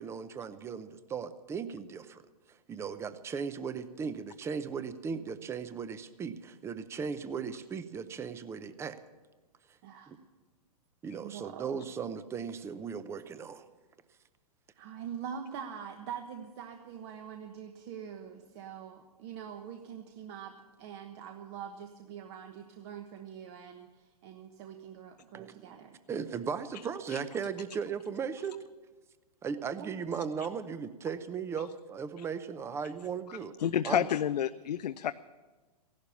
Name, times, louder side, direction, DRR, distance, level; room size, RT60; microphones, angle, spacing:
voice 1, 0.0-2.2 2.5-9.0 10.1-10.2 11.0-13.7 25.3-28.6 29.4-33.5 33.9-34.1, right 6 dB, 10° right, 13 dB, 0.6 m, -37 dB
voice 2, 11.2-11.8 14.7-26.0 29.8-30.0, right 8 dB, 40° right, 5 dB, 1.2 m, -44 dB
voice 3, 33.6-35.1, left 10 dB, 80° left, 12 dB, 0.5 m, -29 dB
16.0 x 11.5 x 7.1 m, 1.3 s
hypercardioid pair, 135°, 21 cm